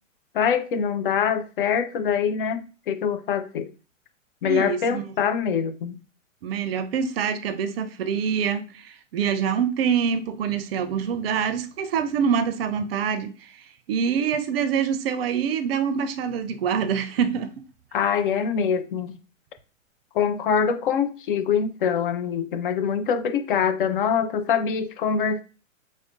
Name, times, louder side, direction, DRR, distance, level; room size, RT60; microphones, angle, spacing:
voice 1, 0.3-3.7 4.4-5.9 17.9-19.2 20.1-25.4, left 7 dB, 45° left, 0.4 m, -24 dB
voice 2, 4.5-5.1 6.4-13.5 13.9-17.5, right 7 dB, 50° right, 0.5 m, -25 dB
4.8 x 2.0 x 2.5 m
figure-of-eight pair, 110°, 39 cm